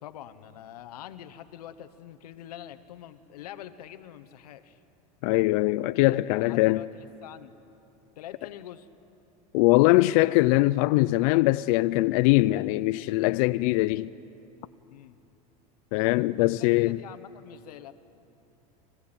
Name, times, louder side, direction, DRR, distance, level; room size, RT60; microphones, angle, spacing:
voice 1, 0.0-4.8 6.3-7.5 8.2-8.9 14.9-15.2 16.4-17.9, left 11 dB, 90° left, 1.1 m, -45 dB
voice 2, 5.2-6.8 9.5-14.1 15.9-17.0, left 19 dB, 65° left, 0.5 m, -22 dB
25.0 x 15.0 x 8.9 m
supercardioid pair, 115°, 19 cm